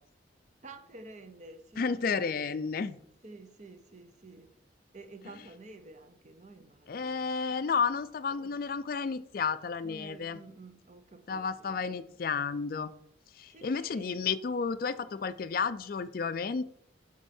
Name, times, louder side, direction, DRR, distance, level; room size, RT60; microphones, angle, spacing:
voice 1, 0.6-2.4 3.2-4.6 4.9-7.3 8.3-8.6 9.8-11.8 13.5-14.3, right 2 dB, 35° right, 0.8 m, -50 dB
voice 2, 1.8-3.0 6.9-10.4 11.3-12.9 13.4-16.6, left 5 dB, 45° left, 0.3 m, -32 dB
7.9 x 5.4 x 4.3 m
head